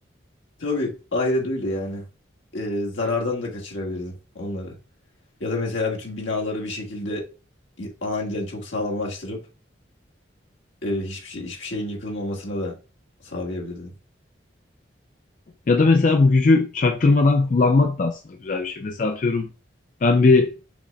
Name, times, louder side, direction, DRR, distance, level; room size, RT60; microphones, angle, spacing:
voice 1, 0.6-2.0 2.5-4.7 5.4-7.2 7.8-9.4 10.8-12.8 13.2-13.9, left 2 dB, 85° left, 1.6 m, -28 dB
voice 2, 15.7-19.5 20.0-20.5, left 3 dB, 40° left, 0.4 m, -18 dB
5.7 x 2.1 x 4.0 m
head